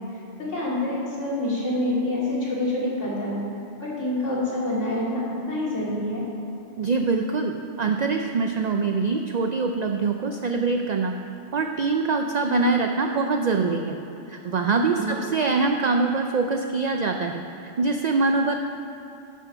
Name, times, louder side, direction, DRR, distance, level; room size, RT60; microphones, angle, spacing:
voice 1, 0.4-3.4 3.8-5.2 5.4-6.2 14.9-15.2, left 1 dB, 75° left, -7 dB, 2.9 m, -27 dB
voice 2, 6.8-11.2 11.5-14.0 14.3-18.5, right 4 dB, 60° right, 4 dB, 0.4 m, -24 dB
11.5 x 6.3 x 5.6 m, 2.9 s
omnidirectional pair, 1.3 m